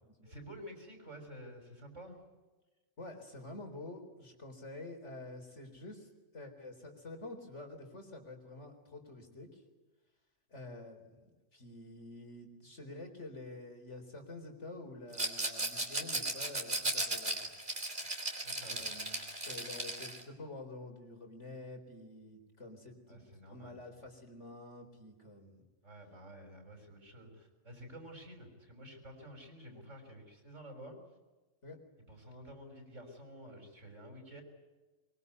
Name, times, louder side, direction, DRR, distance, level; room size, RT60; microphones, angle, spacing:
voice 1, 0.2-2.2 18.4-19.0 23.1-24.1 25.8-31.0 32.1-34.4, equal, 70° right, 4 dB, 6.6 m, -51 dB
voice 2, 3.0-9.6 10.5-11.0 11.5-17.5 18.7-23.2 23.5-25.6 31.6-31.8, left 2 dB, 60° left, 5 dB, 4.5 m, -48 dB
Rattle, 15.1-20.2, right 2 dB, 40° right, 3.5 m, -36 dB
24.0 x 23.5 x 9.6 m, 1.2 s
omnidirectional pair, 1.3 m